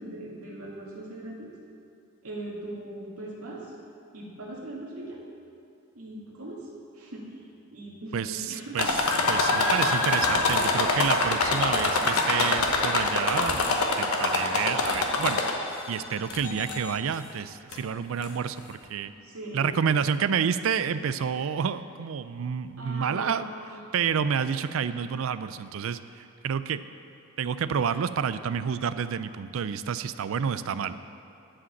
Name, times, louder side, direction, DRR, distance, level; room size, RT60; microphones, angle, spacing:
voice 1, 0.0-1.5 2.2-3.7 4.1-5.2 5.9-6.7 6.9-8.8 19.1-19.8 22.8-23.8, right 1 dB, 85° right, -4 dB, 2.1 m, -40 dB
voice 2, 8.1-9.0 9.3-15.4 15.9-19.1 19.5-23.5 23.9-26.8 27.4-31.0, right 7 dB, 65° right, 13 dB, 0.4 m, -29 dB
sound 1, 8.8-15.8 16.3-16.9 17.7-17.8 18.2-18.3, left 3 dB, 80° left, 1.0 m, -25 dB
11.0 x 5.1 x 7.1 m, 2.5 s
head